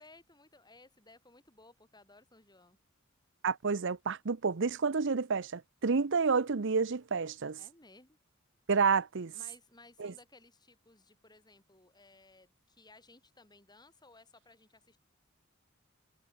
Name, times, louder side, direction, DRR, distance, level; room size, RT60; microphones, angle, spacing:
voice 1, 0.0-2.8 7.6-8.2 9.3-15.0, left 2 dB, 20° left, 7.5 m, -59 dB
voice 2, 3.4-7.6 8.7-9.3 10.0-10.1, right 5 dB, 60° right, 0.7 m, -29 dB
head